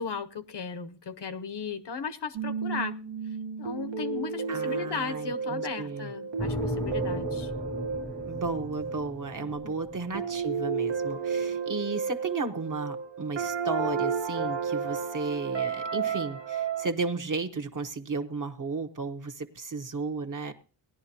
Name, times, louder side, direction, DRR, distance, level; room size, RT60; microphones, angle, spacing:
voice 1, 0.0-3.0 3.6-7.5 9.4-9.7, left 5 dB, 65° left, 11 dB, 0.8 m, -36 dB
sound 1, 2.3-16.9, right 5 dB, 70° right, 1.1 m, -32 dB
voice 2, 4.5-6.1 8.3-20.5, right 4 dB, 45° right, 5 dB, 1.0 m, -34 dB
sound 2, 6.4-10.6, equal, 10° left, 0.6 m, -37 dB
18.5 x 11.0 x 2.8 m, 0.35 s
wide cardioid pair, 130°, 45 cm